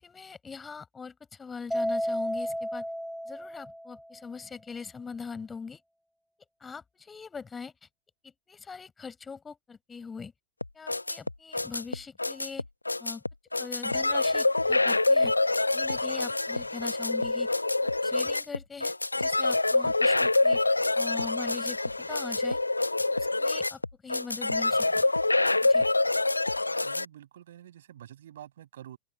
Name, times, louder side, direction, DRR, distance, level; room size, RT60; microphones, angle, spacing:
voice 1, 0.0-2.8 3.3-5.8 6.6-7.7 8.2-10.3 10.7-12.6 13.0-13.2 13.6-15.3 15.7-17.5 18.0-20.6 21.0-22.6 23.1-25.0 25.6-25.9, left 5 dB, 15° left, 4.6 m, -42 dB
Mallet percussion, 1.7-4.2, equal, ahead, 2.5 m, -32 dB
sound 1, 10.6-27.1, left 2 dB, 85° left, 0.9 m, -26 dB
voice 2, 26.8-29.0, right 11 dB, 60° right, 7.2 m, -48 dB
figure-of-eight pair, 90°, 0 cm